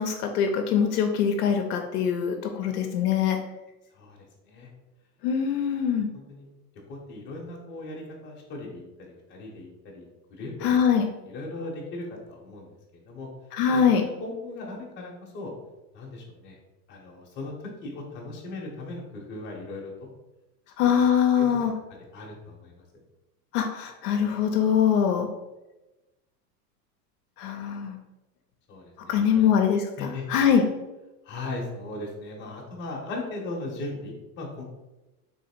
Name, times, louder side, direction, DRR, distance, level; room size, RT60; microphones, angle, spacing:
voice 1, 0.0-3.4 5.2-6.1 10.6-11.1 13.5-14.0 20.8-21.7 23.5-25.3 27.4-28.0 29.1-30.6, left 7 dB, 65° left, 3 dB, 0.7 m, -23 dB
voice 2, 3.9-4.7 6.1-6.5 6.9-10.8 11.3-12.7 13.1-13.3 13.7-15.5 15.9-16.6 16.9-20.1 20.8-21.0 21.4-21.7 22.1-22.7 28.7-29.5 30.0-30.3 31.2-34.6, left 2 dB, 20° left, -2 dB, 0.9 m, -38 dB
3.4 x 2.8 x 4.3 m, 1.0 s
supercardioid pair, 140°, 50 cm